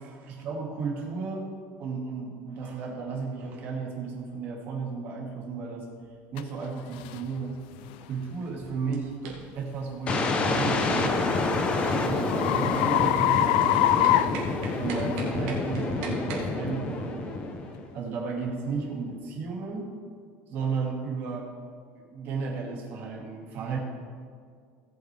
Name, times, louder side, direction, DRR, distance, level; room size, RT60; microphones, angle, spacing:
voice 1, 0.0-1.5 1.8-5.9 6.3-7.6 8.0-9.1 9.5-11.2 12.0-14.3 14.8-17.5 17.9-19.9 20.5-21.5 22.0-23.8, right 5 dB, 40° right, -1 dB, 2.2 m, -34 dB
sound 1, 6.4-6.5 7.0-7.2 7.8-8.0 10.7-15.2, left 13 dB, 85° left, 0.4 m, -25 dB
sound 2, 8.4-16.5, right 4 dB, 65° right, 2.2 m, -42 dB
sound 3, 10.1-17.9, left 3 dB, 20° left, 0.8 m, -28 dB
17.5 x 7.8 x 3.4 m, 2.1 s
cardioid pair, 175°, 5 cm